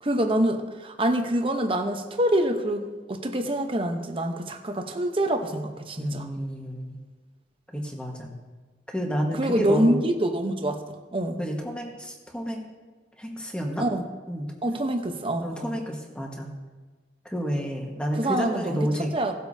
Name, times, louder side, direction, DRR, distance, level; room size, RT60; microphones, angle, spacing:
voice 1, 0.0-6.3 9.4-11.4 13.8-14.1 14.6-15.7 18.2-19.3, right 1 dB, 30° right, 5 dB, 0.9 m, -26 dB
voice 2, 6.0-7.0 7.7-8.3 8.9-10.0 11.4-12.6 13.2-13.8 14.3-14.5 15.4-16.5 17.2-19.1, equal, 5° left, 0 dB, 1.4 m, -30 dB
17.5 x 8.1 x 2.7 m, 1.3 s
head